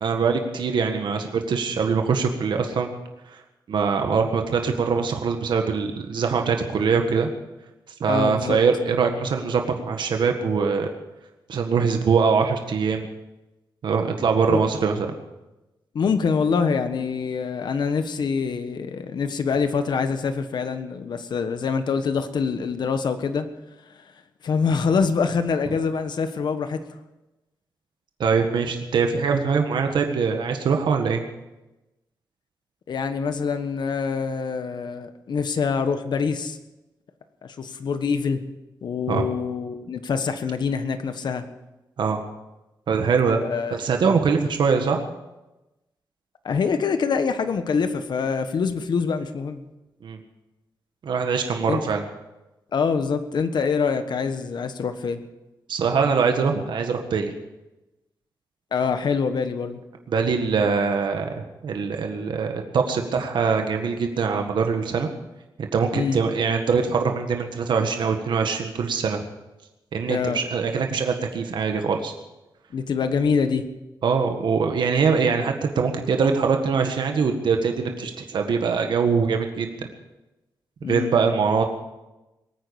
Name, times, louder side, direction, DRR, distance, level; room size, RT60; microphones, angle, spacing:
voice 1, 0.0-2.9 3.3-3.4 3.7-7.3 8.0-10.9 11.5-13.1 13.8-15.1 28.2-31.2 39.1-39.2 42.0-42.2 42.9-43.4 43.7-45.0 50.0-50.2 51.0-52.0 55.7-57.3 60.1-65.1 65.6-69.2 69.9-72.1 74.0-79.7 80.9-81.6, right 5 dB, 80° right, 4 dB, 1.7 m, -23 dB
voice 2, 8.1-8.6 14.5-14.7 15.9-23.5 24.4-26.8 32.9-36.6 37.4-38.4 38.8-41.5 43.4-43.8 46.4-49.6 51.7-51.8 52.7-55.2 58.7-59.8 65.9-66.2 70.1-70.4 72.7-73.7 80.8-81.1, left 5 dB, 70° left, 9 dB, 1.3 m, -25 dB
21.5 x 9.4 x 7.0 m, 1.0 s
wide cardioid pair, 135°, 8 cm